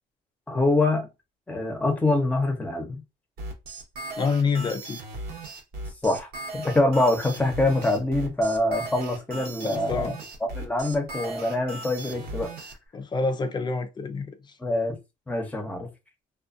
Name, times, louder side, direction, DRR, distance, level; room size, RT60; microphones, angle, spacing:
voice 1, 0.5-1.1 1.5-3.0 6.0-10.1 10.5-12.5 14.6-15.0 15.3-15.9, left 2 dB, 10° left, 0.8 m, -25 dB
sound 1, 3.4-12.7, right 2 dB, 65° right, 0.9 m, -37 dB
voice 2, 4.2-5.0 9.6-10.2 12.9-14.6, left 4 dB, 25° left, 0.4 m, -27 dB
2.4 x 2.3 x 2.5 m
cardioid pair, 110°, 17 cm